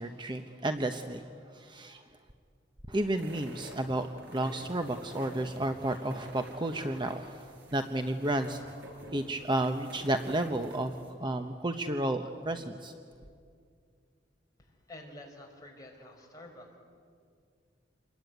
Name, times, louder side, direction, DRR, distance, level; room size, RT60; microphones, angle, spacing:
voice 1, 0.0-2.0 2.9-8.6 9.1-12.9, right 1 dB, 25° right, 6 dB, 0.9 m, -32 dB
elke&margot, 3.2-11.1, right 1 dB, 75° right, 5.9 m, -49 dB
voice 2, 14.6-16.8, left 1 dB, 20° left, 0 dB, 5.3 m, -49 dB
28.0 x 21.5 x 9.4 m, 2.2 s
head